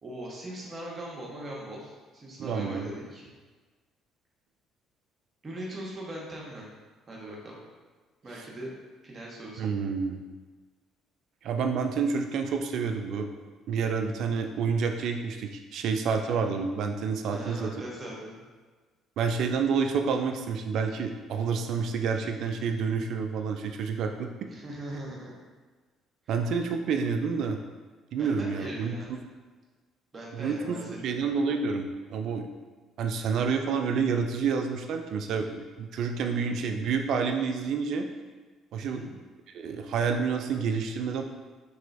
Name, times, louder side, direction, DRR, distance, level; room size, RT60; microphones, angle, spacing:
voice 1, 0.0-3.3 5.4-6.7 7.1-7.6 8.2-8.7 9.0-9.7 16.1-16.4 17.3-18.4 24.5-25.3 28.2-29.2 30.1-31.2 38.8-39.1, right 1 dB, 35° right, -4 dB, 1.0 m, -40 dB
voice 2, 2.4-2.9 8.3-8.4 9.6-10.2 11.4-13.3 13.7-17.7 19.2-24.3 26.3-27.6 28.1-28.9 30.3-32.5 33.0-38.1 38.7-39.0 39.5-41.2, right 5 dB, 65° right, 5 dB, 0.3 m, -29 dB
3.0 x 3.0 x 2.5 m, 1.4 s
hypercardioid pair, 55°, 0 cm